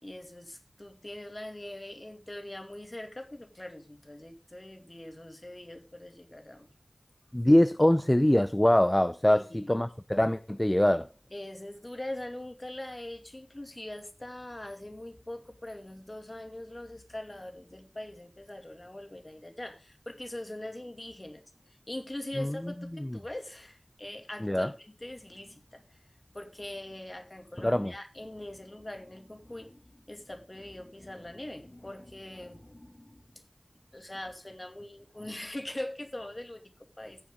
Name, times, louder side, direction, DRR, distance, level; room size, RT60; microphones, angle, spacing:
voice 1, 0.0-6.7 9.3-9.7 11.3-26.0 26.3-33.4 33.9-37.2, left 1 dB, 35° left, 2.5 m, -42 dB
voice 2, 7.3-11.1 22.4-22.7 23.0-23.1 24.4-24.7 27.6-27.9, left 1 dB, 20° left, 0.6 m, -24 dB
15.5 x 7.4 x 3.8 m
wide cardioid pair, 50°, 0 cm